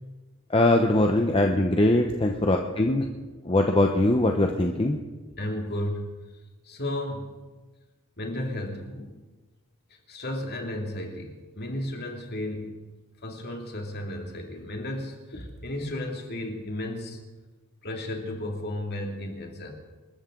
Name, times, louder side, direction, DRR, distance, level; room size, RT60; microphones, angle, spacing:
voice 1, 0.5-3.0 3.5-5.0, left 1 dB, 25° left, 3 dB, 0.8 m, -22 dB
voice 2, 5.4-6.1 6.7-7.3 8.2-9.2 10.1-12.8 13.2-17.2 17.8-19.7, left 1 dB, 50° left, 2 dB, 2.4 m, -33 dB
27.0 x 13.5 x 3.8 m, 1.3 s
head